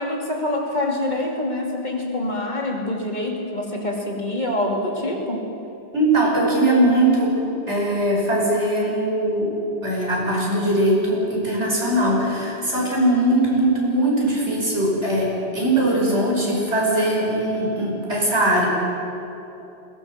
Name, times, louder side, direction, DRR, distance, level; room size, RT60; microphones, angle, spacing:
voice 1, 0.0-5.4, left 1 dB, 40° left, 0 dB, 2.9 m, -25 dB
voice 2, 5.9-7.4 7.7-9.6 9.8-18.7, right 1 dB, 90° right, -3 dB, 5.8 m, -20 dB
21.5 x 18.5 x 7.4 m, 3.0 s
omnidirectional pair, 1.1 m